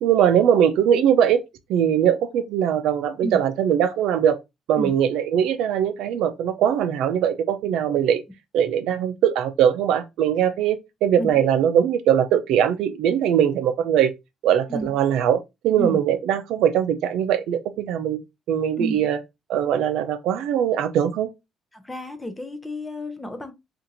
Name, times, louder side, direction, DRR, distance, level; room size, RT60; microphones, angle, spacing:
voice 1, 0.0-1.4 1.7-4.4 4.7-8.2 8.5-14.1 14.4-18.2 18.5-19.2 19.5-21.3, right 9 dB, 80° right, 0.5 m, -21 dB
voice 2, 21.7-23.5, equal, 5° left, 0.5 m, -30 dB
2.9 x 2.5 x 3.8 m
cardioid pair, 170°, 0 cm